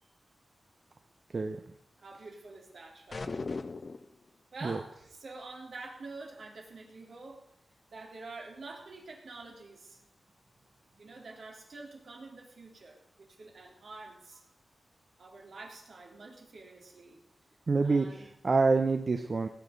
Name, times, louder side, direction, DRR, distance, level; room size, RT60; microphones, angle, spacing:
voice 1, 2.0-3.3 4.5-7.4 7.9-10.0 11.0-14.4 15.2-17.2 17.8-18.3, right 3 dB, 75° right, 0 dB, 3.6 m, -47 dB
sound 1, 3.1-4.1, left 3 dB, 50° left, 0.8 m, -37 dB
voice 2, 17.7-19.5, right 4 dB, 45° right, 6 dB, 0.9 m, -27 dB
19.0 x 8.3 x 5.3 m, 0.76 s
wide cardioid pair, 80°, 0 cm